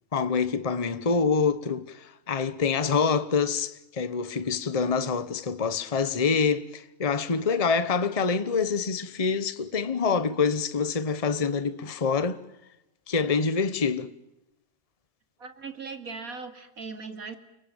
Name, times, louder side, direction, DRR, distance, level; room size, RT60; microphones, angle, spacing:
voice 1, 0.1-12.4 13.1-14.1, left 5 dB, 30° left, 1.1 m, -26 dB
voice 2, 15.4-17.4, right 4 dB, 85° right, 3.0 m, -39 dB
29.5 x 20.0 x 9.0 m
omnidirectional pair, 1.5 m